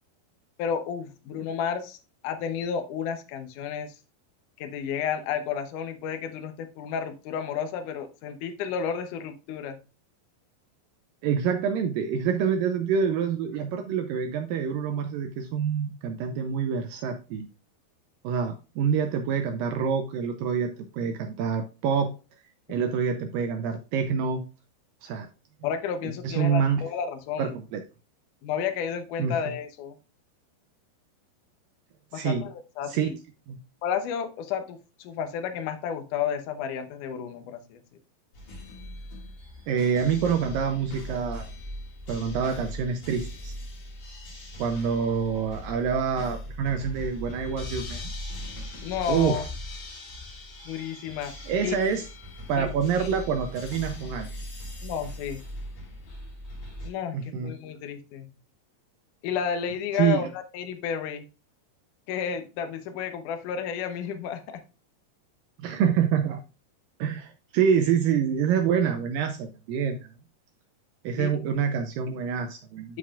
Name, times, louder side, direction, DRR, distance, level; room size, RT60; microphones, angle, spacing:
voice 1, 0.6-2.0 2.2-3.9 4.6-9.8 22.7-22.8 25.6-27.6 28.4-30.0 32.1-33.2 33.8-37.8 48.8-49.4 50.7-51.3 51.6-51.8 52.6-52.7 53.0-53.1 54.8-55.4 56.8-58.3 59.2-61.3 62.1-64.6 71.2-71.4 72.9-73.0, left 7 dB, 70° left, 7 dB, 2.0 m, -32 dB
voice 2, 11.2-17.5 18.2-22.1 22.7-24.4 25.0-25.3 26.0-26.8 27.4-27.8 29.2-29.4 32.1-32.4 32.8-33.1 33.5-33.6 39.7-41.5 42.1-43.5 44.6-48.1 49.1-49.4 51.5-52.1 52.5-54.4 57.1-57.5 59.9-60.3 65.6-66.4 67.0-70.1 71.0-73.0, right 7 dB, 85° right, 6 dB, 2.0 m, -26 dB
sound 1, 38.3-56.9, left 1 dB, 55° left, 5.1 m, -39 dB
12.5 x 4.8 x 2.4 m, 0.31 s
omnidirectional pair, 4.7 m